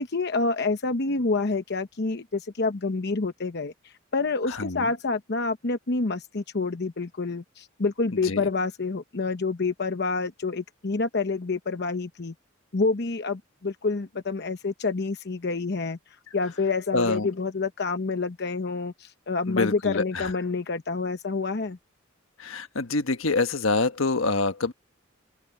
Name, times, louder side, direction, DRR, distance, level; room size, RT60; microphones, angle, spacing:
voice 1, 0.0-12.3 12.7-16.0 16.3-21.8, left 3 dB, 55° left, 0.9 m, -28 dB
voice 2, 4.4-4.9 8.1-8.5 16.9-17.3 19.5-20.3 22.4-24.7, left 3 dB, 85° left, 1.4 m, -26 dB
open air
head